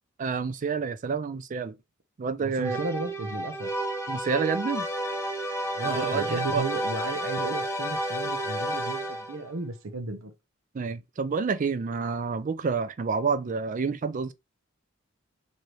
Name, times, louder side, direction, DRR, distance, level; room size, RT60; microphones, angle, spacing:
voice 1, 0.2-1.8 2.2-2.8 4.1-4.9 5.8-6.6 10.7-14.3, right 5 dB, 40° right, 0.4 m, -29 dB
voice 2, 2.4-3.7 5.7-10.3, right 3 dB, 75° right, 0.8 m, -34 dB
sound 1, 2.6-9.5, equal, 15° left, 0.6 m, -31 dB
3.2 x 2.7 x 4.4 m
head